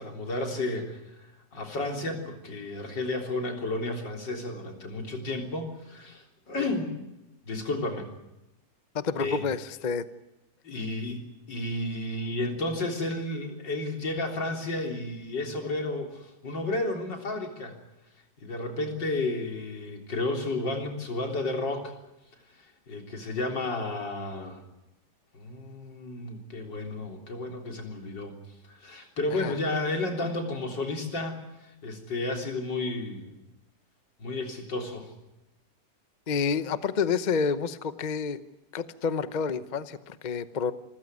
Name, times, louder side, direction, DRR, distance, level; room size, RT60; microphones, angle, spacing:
voice 1, 0.0-7.0 7.4-8.1 9.2-9.4 10.6-17.8 18.4-21.9 22.6-24.6 25.3-28.4 28.7-33.3 34.2-35.1, left 2 dB, 85° left, 3 dB, 4.3 m, -32 dB
voice 2, 8.9-10.0 29.3-29.6 36.3-38.4 38.7-40.7, left 5 dB, 35° left, 13 dB, 0.8 m, -29 dB
27.0 x 15.0 x 9.5 m, 0.94 s
omnidirectional pair, 1.9 m